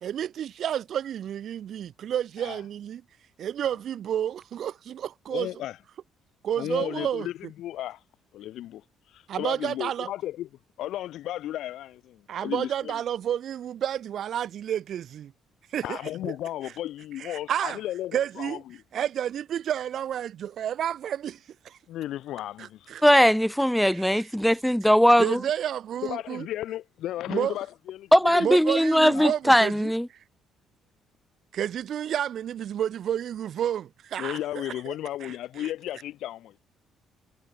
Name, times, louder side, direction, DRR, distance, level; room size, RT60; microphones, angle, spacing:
voice 1, 0.0-3.0 3.4-5.5 6.4-7.3 9.3-10.1 12.3-15.3 15.7-16.3 17.2-17.8 18.1-18.6 18.9-21.4 21.6-21.8 22.6-23.0 23.9-24.3 25.2-26.5 27.3-27.6 28.4-29.9 31.5-34.9 35.2-35.7, right 10 dB, 60° right, 0.4 m, -30 dB
voice 2, 5.3-5.8 6.6-8.0 8.3-10.5 10.8-12.9 15.8-18.8 21.9-23.1 26.0-28.6 29.0-29.3 34.2-36.5, left 13 dB, 70° left, 0.5 m, -34 dB
voice 3, 23.0-25.4 28.1-30.1, equal, ahead, 0.5 m, -20 dB
hypercardioid pair, 55°, 0 cm